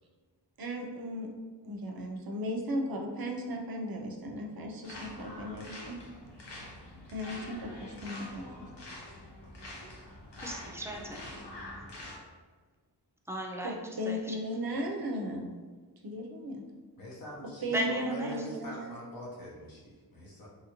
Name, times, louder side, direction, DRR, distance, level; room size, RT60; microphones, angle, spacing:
voice 1, 0.6-1.3 1.6-6.0 7.1-8.5 13.6-15.5 16.0-16.6 17.6-18.9, equal, 60° right, 1 dB, 0.5 m, -36 dB
sound 1, 4.8-12.2, left 1 dB, 80° left, 0.7 m, -45 dB
voice 2, 10.4-11.2 13.3-14.4 17.7-18.3, equal, 5° right, 0 dB, 0.3 m, -36 dB
voice 3, 17.0-20.5, equal, 55° left, -5 dB, 0.9 m, -43 dB
2.9 x 2.5 x 2.8 m, 1.4 s
wide cardioid pair, 85°, 42 cm